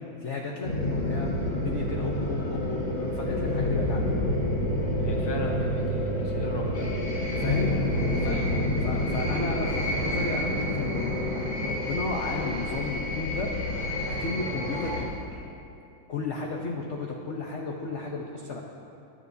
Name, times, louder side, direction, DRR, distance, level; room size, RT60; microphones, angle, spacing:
voice 1, 0.2-4.1 7.4-7.8 8.2-8.4 8.8-13.5 14.1-15.4 16.1-18.6, left 3 dB, 50° left, -1 dB, 0.9 m, -34 dB
sound 1, 0.6-15.0, left 1 dB, 80° left, 2.7 m, -28 dB
voice 2, 5.0-6.9 8.2-8.5, left 1 dB, 15° left, -1 dB, 1.1 m, -36 dB
21.5 x 10.5 x 2.7 m, 2.7 s
omnidirectional pair, 2.1 m